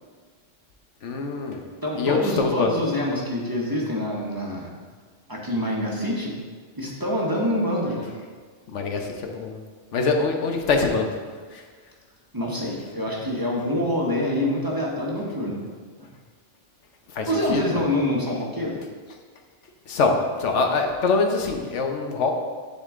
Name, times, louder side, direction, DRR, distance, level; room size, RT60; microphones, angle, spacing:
voice 1, 1.0-1.6 2.0-2.7 8.7-9.6 9.9-11.1 11.5-11.6 17.1-17.8 19.9-22.3, left 4 dB, 90° left, 3 dB, 1.2 m, -24 dB
voice 2, 1.8-4.7 5.3-6.4 6.8-8.1 12.3-15.6 16.0-16.1 17.3-18.8, left 1 dB, 20° right, -3 dB, 1.0 m, -26 dB
10.0 x 4.3 x 3.7 m, 1.5 s
omnidirectional pair, 1.2 m